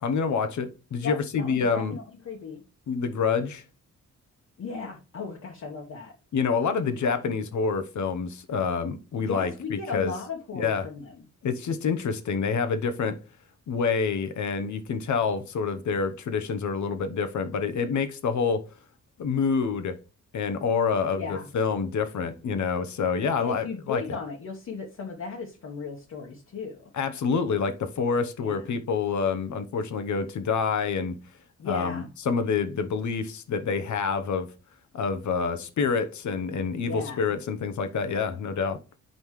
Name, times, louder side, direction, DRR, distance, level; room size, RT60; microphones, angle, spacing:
voice 1, 0.0-2.0 2.9-3.6 6.3-10.1 10.5-10.9 11.4-13.2 13.7-18.6 19.2-20.0 20.3-24.0 26.9-31.2 31.6-34.5 34.9-38.8, left 5 dB, 75° left, 0.9 m, -27 dB
voice 2, 1.0-2.6 4.6-6.1 9.2-11.2 21.1-21.5 23.4-26.9 28.4-28.8 31.6-32.1 36.8-37.4, left 4 dB, 60° left, 1.3 m, -36 dB
7.6 x 5.2 x 3.1 m
wide cardioid pair, 135°, 29 cm